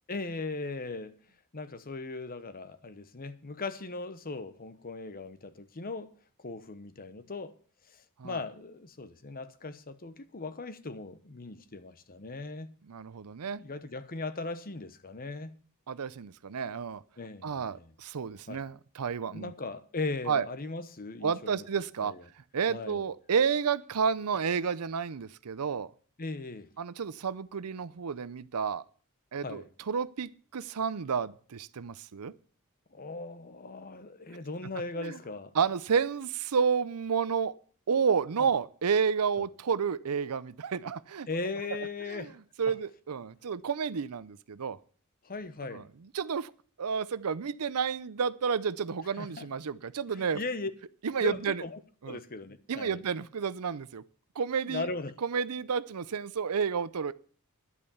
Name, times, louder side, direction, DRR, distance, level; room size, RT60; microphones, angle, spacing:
voice 1, 0.1-1.1 1.5-6.1 6.4-7.5 7.9-12.7 13.5-15.5 17.2-17.9 18.5-18.6 19.3-21.7 22.0-22.2 22.7-23.0 26.2-26.7 29.4-29.7 32.9-35.5 38.4-38.5 39.4-39.5 41.3-42.4 42.7-42.8 45.2-45.8 49.2-49.5 50.2-50.7 51.2-53.0 54.6-55.1, left 3 dB, 40° left, 1.0 m, -38 dB
voice 2, 12.9-13.6 15.9-17.0 17.4-19.5 20.3-20.5 21.2-22.1 22.5-25.9 26.8-28.8 29.3-32.3 35.0-35.2 35.5-37.5 37.9-41.3 41.7-41.8 42.1-42.3 42.6-44.8 45.7-45.8 46.1-46.5 46.8-50.4 51.0-51.6 52.0-52.2 52.7-54.0 54.4-54.9 55.2-57.1, right 6 dB, 90° right, 0.6 m, -30 dB
11.0 x 8.5 x 7.0 m
head